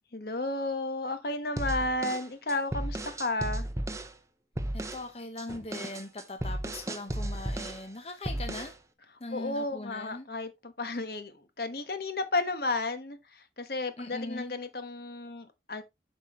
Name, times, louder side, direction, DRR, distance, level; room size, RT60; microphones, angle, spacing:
voice 1, 0.1-3.7 9.3-15.8, left 2 dB, 60° left, 1.2 m, -33 dB
sound 1, 1.6-4.1 4.6-5.1 5.4-7.9 8.2-8.8, right 1 dB, 15° right, 0.6 m, -34 dB
voice 2, 4.7-8.8 9.2-10.3 14.0-14.5, left 2 dB, 35° left, 0.9 m, -40 dB
7.8 x 6.0 x 3.1 m
head